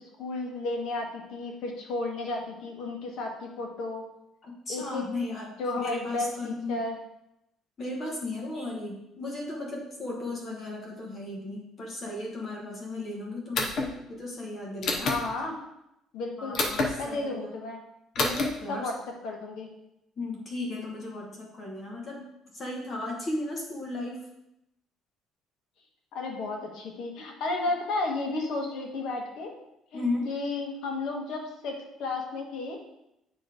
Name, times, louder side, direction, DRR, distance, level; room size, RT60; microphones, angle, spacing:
voice 1, 0.2-4.1 4.7-5.0 5.6-7.0 15.0-15.5 16.1-16.6 17.0-17.8 18.7-19.7 26.1-29.6 29.9-32.8, left 2 dB, 60° left, 1 dB, 1.3 m, -33 dB
voice 2, 4.4-6.8 7.8-15.1 16.4-17.5 18.2-18.9 20.2-22.2 22.5-24.2 29.9-30.3, left 2 dB, 25° left, -2 dB, 1.2 m, -35 dB
sound 1, 13.5-13.9 14.8-15.2 16.5-16.9 18.2-18.5, left 3 dB, 45° left, 0.9 m, -26 dB
8.9 x 3.2 x 4.8 m, 0.84 s
cardioid pair, 175°, 0 cm